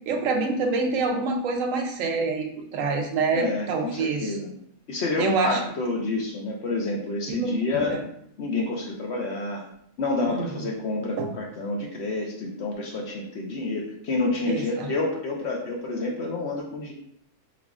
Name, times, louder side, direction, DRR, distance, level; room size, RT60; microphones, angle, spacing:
voice 1, 0.1-4.3 5.2-5.6 7.3-7.5 7.9-8.0 10.3-10.7 11.2-11.3 14.5-14.9, right 4 dB, 70° right, 3 dB, 0.9 m, -26 dB
voice 2, 3.3-4.5 4.9-8.0 8.4-9.6 10.0-16.9, left 2 dB, 65° left, 0 dB, 0.7 m, -28 dB
4.9 x 2.4 x 2.3 m, 0.71 s
omnidirectional pair, 1.5 m